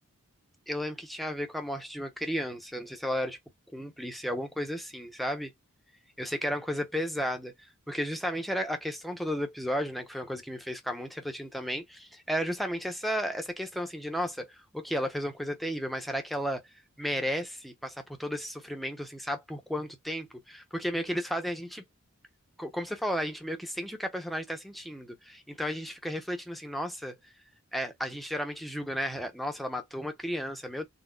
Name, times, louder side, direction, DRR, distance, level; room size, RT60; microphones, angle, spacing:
voice 1, 0.7-3.4 3.7-5.5 6.2-7.5 7.9-16.6 17.0-21.8 22.6-27.2 27.7-30.8, equal, ahead, 0.7 m, -33 dB
4.0 x 2.3 x 2.3 m
head